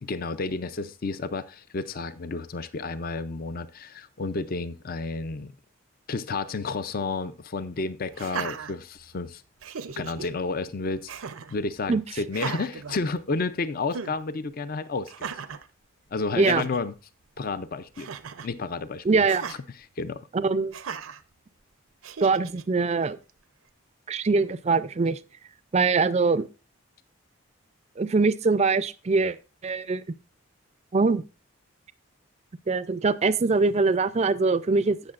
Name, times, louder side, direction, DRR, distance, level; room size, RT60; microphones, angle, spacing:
voice 1, 0.0-5.5 6.1-9.4 10.0-11.1 11.5-15.3 16.1-16.9 17.4-18.1 18.4-19.6 20.0-20.3, left 3 dB, 45° left, 0.5 m, -31 dB
Laughter, 8.1-9.2 9.6-10.3 11.1-11.6 12.3-13.5 13.9-14.2 15.1-15.7 16.2-16.3 16.4-16.8 17.9-18.5 19.3-19.6 20.7-21.2 22.0-22.6, right 6 dB, 90° right, 0.6 m, -37 dB
voice 2, 19.0-19.5 20.3-20.8 22.2-23.2 24.1-25.2 25.7-26.5 28.0-29.4 29.6-30.0 30.9-31.2 32.7-35.0, right 4 dB, 30° right, 0.4 m, -23 dB
16.0 x 6.4 x 2.4 m
head